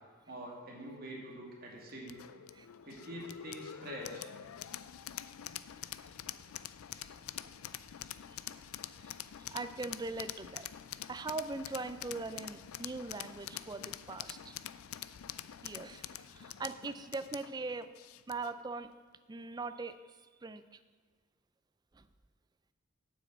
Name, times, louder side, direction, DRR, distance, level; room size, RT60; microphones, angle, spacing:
voice 1, 0.3-2.2 2.9-4.3, right 1 dB, 45° right, -2 dB, 2.3 m, -45 dB
sound 1, 2.1-18.6, left 11 dB, 85° left, 0.4 m, -46 dB
voice 2, 8.9-10.7 11.1-14.6 15.6-17.9 18.3-18.9 19.3-20.8 21.9-22.1, right 3 dB, 20° right, 12 dB, 0.4 m, -41 dB
7.9 x 6.2 x 7.8 m, 1.5 s
head